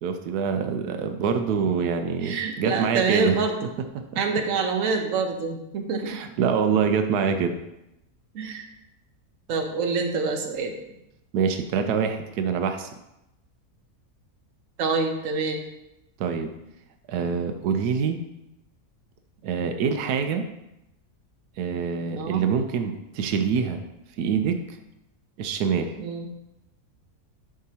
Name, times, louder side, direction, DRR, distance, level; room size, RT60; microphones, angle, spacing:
voice 1, 0.0-3.4 3.9-4.2 6.1-7.6 11.3-12.9 16.2-16.5 17.1-18.2 19.4-20.4 21.6-23.8 24.2-24.6 25.4-25.9, right 6 dB, 90° right, 7 dB, 1.2 m, -25 dB
voice 2, 2.2-3.6 4.2-6.2 8.3-8.7 9.5-10.7 14.8-15.6 22.1-22.4 26.0-26.3, right 4 dB, 60° right, 3 dB, 1.2 m, -26 dB
11.5 x 4.8 x 2.8 m, 0.89 s
omnidirectional pair, 1.6 m